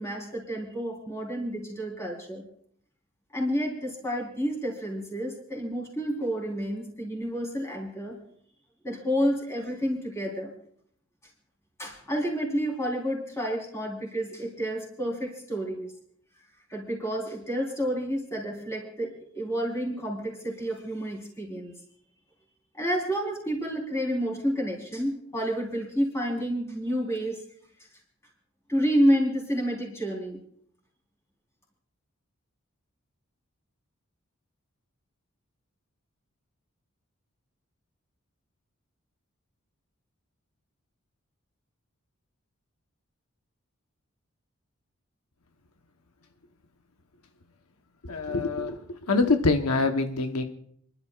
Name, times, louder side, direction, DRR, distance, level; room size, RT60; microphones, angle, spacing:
voice 1, 0.0-2.5 3.3-8.2 8.8-10.5 11.8-15.9 16.7-21.7 22.7-27.4 28.7-30.4, equal, 10° left, -1 dB, 3.8 m, -29 dB
voice 2, 48.0-48.8 49.1-50.4, left 3 dB, 90° left, 6 dB, 1.0 m, -24 dB
29.5 x 12.0 x 2.4 m, 0.63 s
head